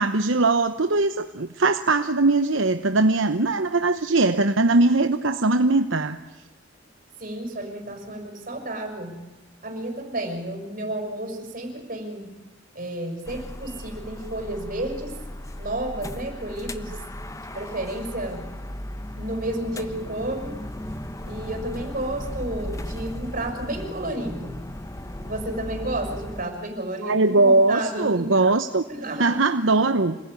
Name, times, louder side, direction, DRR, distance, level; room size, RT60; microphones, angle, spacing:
voice 1, 0.0-6.2 27.0-28.8 29.2-30.2, right 3 dB, 70° right, 8 dB, 1.0 m, -20 dB
voice 2, 7.2-9.2 9.6-12.4 12.7-15.2 15.6-17.0 17.5-18.5 19.1-20.7 21.2-24.6 25.2-28.3 28.9-29.4, right 1 dB, 45° right, 3 dB, 6.0 m, -31 dB
sound 1, 13.3-26.5, left 1 dB, 15° left, 1.1 m, -36 dB
27.0 x 20.0 x 9.9 m, 1.1 s
head